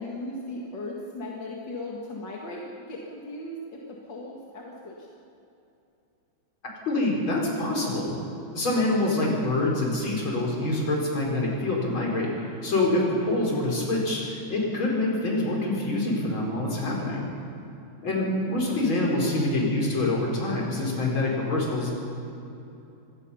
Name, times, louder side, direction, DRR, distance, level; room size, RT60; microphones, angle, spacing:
voice 1, 0.0-4.9 18.0-18.7, left 1 dB, 60° left, -3 dB, 2.6 m, -38 dB
voice 2, 6.9-8.2 8.5-17.3 18.0-21.9, left 2 dB, 75° left, -2 dB, 5.2 m, -26 dB
25.5 x 18.5 x 5.7 m, 2.8 s
omnidirectional pair, 2.2 m